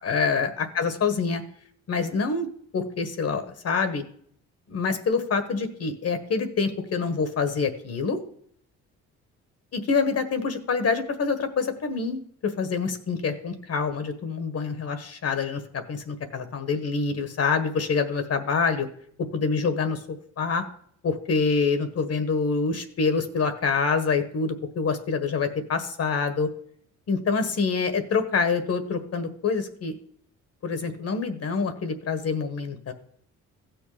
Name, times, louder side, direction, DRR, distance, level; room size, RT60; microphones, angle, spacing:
voice 1, 0.0-1.4 1.9-2.5 2.7-4.0 4.7-8.2 9.7-15.6 15.9-18.9 19.3-20.0 20.4-20.6 21.0-26.5 27.1-30.0 30.6-32.9, left 5 dB, 55° left, 9 dB, 1.5 m, -26 dB
15.0 x 6.5 x 5.0 m, 0.63 s
cardioid pair, 90°, 30 cm